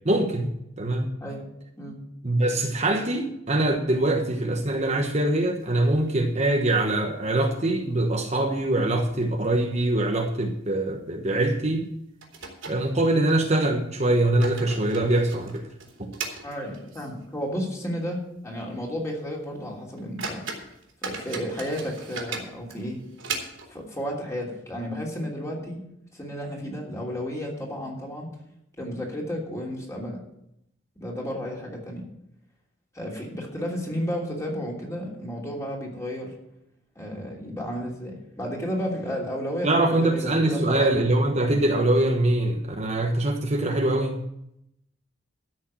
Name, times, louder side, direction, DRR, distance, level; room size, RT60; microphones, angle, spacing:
voice 1, 0.0-0.5 0.8-1.1 2.2-11.9 12.7-15.7 16.0-16.1 39.6-44.2, right 1 dB, 35° right, 3 dB, 1.1 m, -23 dB
sound 1, 5.5-6.4 6.8-6.9 7.2-7.3 7.9-8.4 8.7-8.8 9.5-9.6 9.9-10.1 11.5-11.6 12.2-13.4 14.1-17.3 17.6-17.7 18.2-18.4 18.8-19.0 19.5-19.6 20.0-23.9, right 4 dB, 70° right, 3.1 m, -38 dB
voice 2, 16.4-18.2 18.4-20.4 21.0-23.0 23.7-25.8 26.1-28.3 28.8-30.2 31.0-32.0 32.9-36.3 36.9-40.9, equal, 15° left, -2 dB, 3.0 m, -32 dB
13.0 x 6.5 x 7.6 m, 0.80 s
head